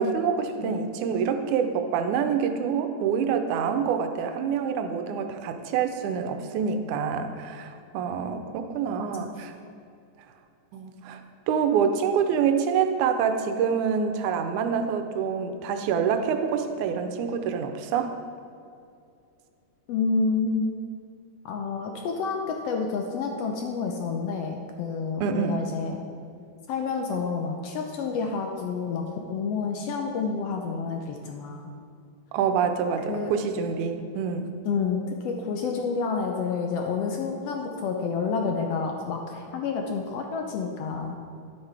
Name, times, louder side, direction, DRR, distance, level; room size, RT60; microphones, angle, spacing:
voice 1, 0.0-9.5 10.7-11.2 11.5-18.1 25.2-25.6 32.3-34.5, right 6 dB, 85° right, 7 dB, 2.1 m, -26 dB
voice 2, 19.9-20.8 21.4-26.0 26.7-31.7 33.1-33.3 34.7-41.2, left 5 dB, 80° left, 2 dB, 1.4 m, -29 dB
10.5 x 8.1 x 3.4 m, 2.5 s
omnidirectional pair, 3.4 m